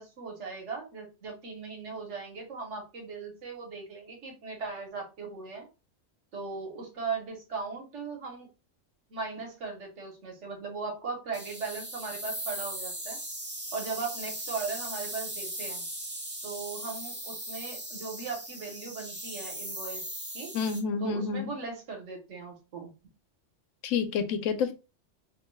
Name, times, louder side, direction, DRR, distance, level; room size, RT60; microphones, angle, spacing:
voice 1, 0.0-5.7 6.3-8.5 9.1-13.2 13.7-15.8 16.4-20.0 20.3-20.5 21.0-22.9, right 4 dB, 70° right, 1.3 m, -38 dB
sound 1, 11.3-20.8, right 1 dB, 20° right, 0.3 m, -38 dB
voice 2, 20.5-21.5 23.8-24.7, left 6 dB, 85° left, 1.0 m, -29 dB
2.9 x 2.2 x 3.1 m
omnidirectional pair, 1.3 m